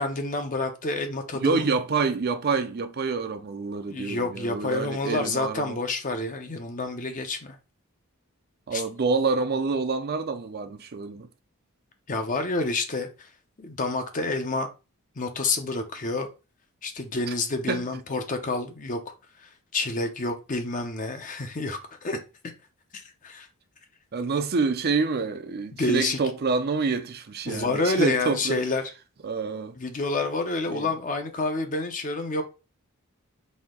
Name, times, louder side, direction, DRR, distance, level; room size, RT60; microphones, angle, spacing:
voice 1, 0.0-1.7 3.9-7.6 8.7-8.8 12.1-13.3 13.6-14.7 15.2-16.3 16.8-19.1 19.4-22.2 22.9-23.5 25.7-26.2 27.5-28.9 29.8-32.4, left 2 dB, 35° left, 0.7 m, -28 dB
voice 2, 1.4-5.8 8.7-11.3 17.7-17.9 24.1-28.6 29.2-29.8 30.7-30.9, right 4 dB, 45° right, 0.5 m, -27 dB
4.2 x 2.8 x 3.6 m
head